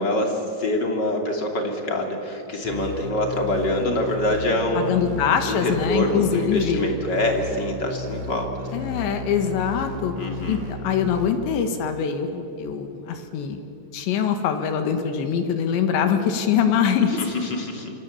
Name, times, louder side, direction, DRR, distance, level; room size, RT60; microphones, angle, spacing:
voice 1, 0.0-5.0 5.5-8.7 10.2-10.6 17.2-18.0, left 1 dB, 30° left, 2 dB, 2.8 m, -25 dB
sound 1, 2.6-11.3, left 2 dB, 45° right, 4.5 m, -34 dB
voice 2, 4.8-6.8 8.7-10.1 10.5-13.6 13.9-17.2, left 7 dB, 85° left, 7 dB, 4.0 m, -23 dB
27.0 x 26.0 x 7.4 m, 2.8 s
omnidirectional pair, 5.1 m